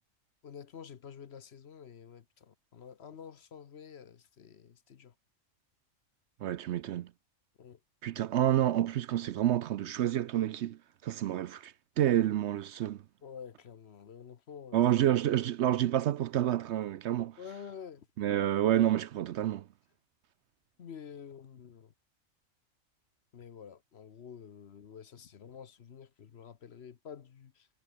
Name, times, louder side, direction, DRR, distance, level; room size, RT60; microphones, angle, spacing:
voice 1, 0.4-5.1 7.6-7.8 8.2-8.3 13.2-14.9 17.4-18.1 20.8-21.9 23.3-27.7, left 7 dB, 55° left, 1.1 m, -49 dB
voice 2, 6.4-7.1 8.0-13.0 14.7-17.4 18.2-19.7, right 12 dB, 65° right, 0.8 m, -29 dB
omnidirectional pair, 1.4 m